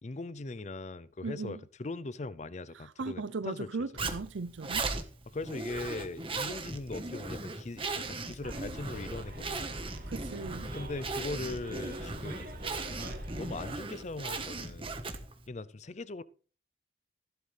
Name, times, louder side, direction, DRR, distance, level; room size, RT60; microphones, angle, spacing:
voice 1, 0.0-4.1 5.3-9.8 10.7-12.6 12.9-15.0 15.5-16.2, left 2 dB, 35° left, 0.5 m, -40 dB
voice 2, 1.2-1.6 3.0-4.9 10.1-10.7, right 4 dB, 75° right, 0.6 m, -37 dB
Zipper (clothing), 4.0-15.4, right 3 dB, 25° right, 1.3 m, -38 dB
Bus, 8.4-13.7, equal, 50° right, 2.4 m, -43 dB
15.5 x 11.5 x 3.4 m
head